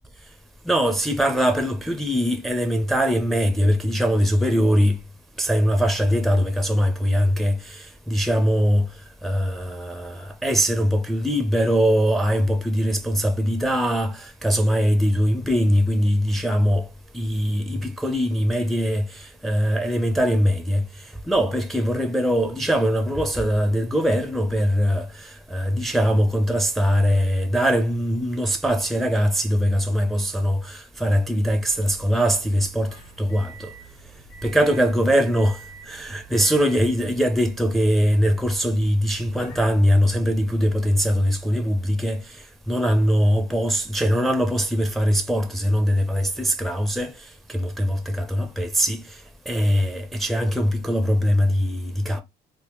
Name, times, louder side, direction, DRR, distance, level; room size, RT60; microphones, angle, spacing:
voice 1, 0.7-5.0 5.4-8.9 9.2-16.9 17.1-20.8 21.3-33.7 34.4-35.6 35.9-42.2 42.7-47.1 47.5-49.0 49.5-52.2, equal, ahead, 0.4 m, -21 dB
sound 1, 31.7-41.1, right 6 dB, 80° left, 1.2 m, -47 dB
3.4 x 2.0 x 3.0 m
cardioid pair, 110°, 17 cm